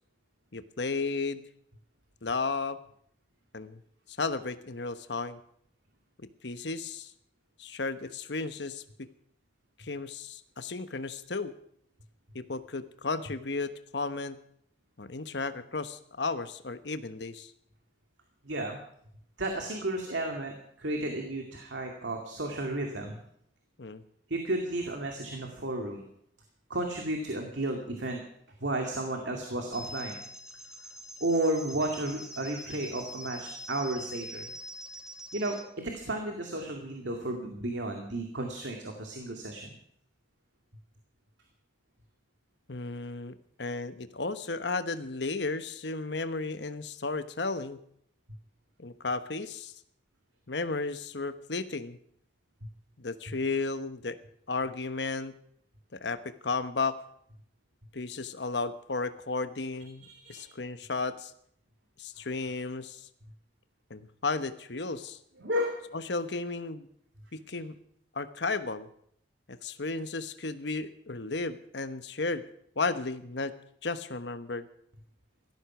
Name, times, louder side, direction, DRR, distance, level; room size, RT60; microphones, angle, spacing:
voice 1, 0.5-1.4 2.2-2.8 3.5-3.8 4.1-5.4 6.2-7.1 7.6-9.1 9.8-11.5 12.3-14.4 15.0-17.5 23.8-24.0 42.7-47.8 48.8-49.7 50.5-52.0 53.0-54.2 54.5-55.3 55.9-57.0 57.9-61.3 62.0-63.1 63.9-65.2 65.9-66.9 67.3-67.8 68.1-68.9 69.5-72.4 72.8-73.5 73.8-74.7, left 3 dB, 75° left, 11 dB, 1.1 m, -34 dB
voice 2, 18.4-18.8 19.4-23.2 24.3-26.0 26.7-28.2 28.6-30.1 31.2-34.5 35.3-39.7 52.6-52.7 60.0-60.5 65.4-65.8 67.5-67.6, right 1 dB, 80° right, 3 dB, 2.3 m, -33 dB
sound 1, 29.7-35.6, equal, 5° right, 2.7 m, -44 dB
17.5 x 13.5 x 6.1 m, 0.68 s
head